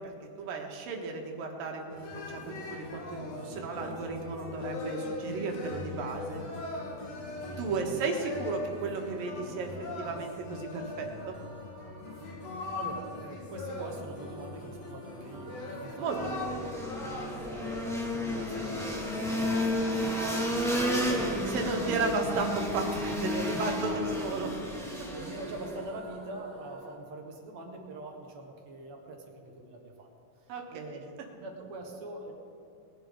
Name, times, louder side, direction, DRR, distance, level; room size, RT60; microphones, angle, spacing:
voice 1, 0.4-6.4 7.5-11.4 16.0-16.6 21.5-24.5 25.0-25.1 30.5-31.0, right 4 dB, 85° right, 2 dB, 3.3 m, -34 dB
sound 1, 1.9-19.6, left 2 dB, 55° left, 2.5 m, -40 dB
voice 2, 7.7-8.1 12.7-16.7 17.0-22.0 23.4-24.3 24.5-24.6 25.1-30.1 30.7-32.3, right 2 dB, 60° right, 1 dB, 2.5 m, -43 dB
sound 2, 11.1-24.1 24.4-27.0, right 1 dB, 40° right, 2.4 m, -51 dB
sound 3, 16.0-25.9, left 1 dB, ahead, 1.0 m, -32 dB
20.5 x 11.0 x 3.8 m, 2.6 s
omnidirectional pair, 3.9 m